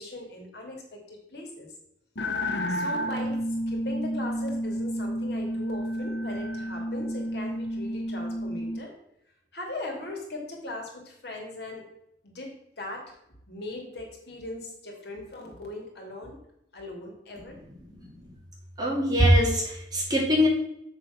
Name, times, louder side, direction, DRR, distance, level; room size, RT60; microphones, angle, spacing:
voice 1, 0.0-1.7 2.7-3.4 3.7-8.9 9.5-11.8 12.2-13.1 13.5-16.4 16.7-17.6, left 2 dB, 65° left, 1 dB, 2.5 m, -39 dB
sound 1, 2.2-8.8, equal, 85° left, 0.8 m, -30 dB
voice 2, 18.8-20.5, equal, 25° right, -3 dB, 2.7 m, -22 dB
7.1 x 6.4 x 5.8 m, 0.77 s
head